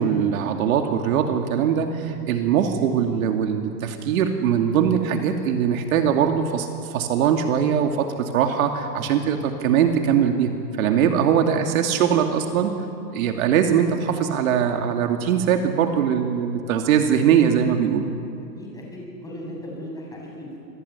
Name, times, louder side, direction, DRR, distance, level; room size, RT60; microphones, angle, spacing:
voice 1, 0.0-10.5 10.8-12.7 13.1-18.0, right 8 dB, 55° right, 4 dB, 2.5 m, -21 dB
voice 2, 18.6-20.6, left 1 dB, 5° left, -2 dB, 7.9 m, -37 dB
27.0 x 22.0 x 9.7 m, 2.7 s
hypercardioid pair, 150°, 48 cm